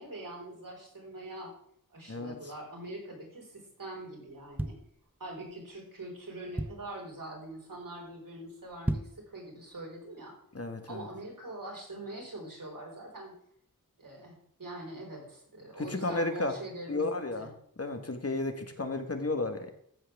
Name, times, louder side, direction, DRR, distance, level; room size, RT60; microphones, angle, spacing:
voice 1, 0.0-1.5 1.9-4.8 5.2-10.4 10.9-13.3 14.0-17.5, right 1 dB, 70° right, -1 dB, 4.7 m, -43 dB
voice 2, 2.1-2.4 10.5-11.1 15.8-16.5 16.9-17.5 17.8-19.7, left 2 dB, 45° left, 7 dB, 1.4 m, -33 dB
sound 1, 4.3-5.5 6.0-6.1 6.3-7.1 7.5-7.8 8.1-8.2 8.7-9.3 9.7-9.8, right 1 dB, 5° right, 0.5 m, -35 dB
15.0 x 7.5 x 3.5 m, 0.68 s
wide cardioid pair, 70°, 34 cm